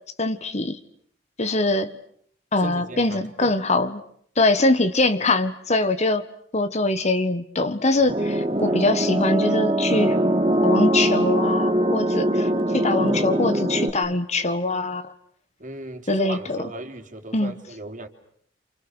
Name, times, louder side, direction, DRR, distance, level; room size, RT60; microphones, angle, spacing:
voice 1, 0.2-0.8 1.4-1.9 2.5-4.0 4.4-6.2 6.5-10.2 10.6-12.5 12.7-15.1 16.1-16.6 17.3-17.5, left 2 dB, 35° left, 11 dB, 1.5 m, -23 dB
voice 2, 2.6-3.6 8.0-8.8 10.6-10.7 15.6-18.1, right 2 dB, 45° right, 5 dB, 3.6 m, -37 dB
sound 1, 8.1-13.9, right 1 dB, 30° right, 2.3 m, -22 dB
29.0 x 28.5 x 6.4 m, 0.64 s
head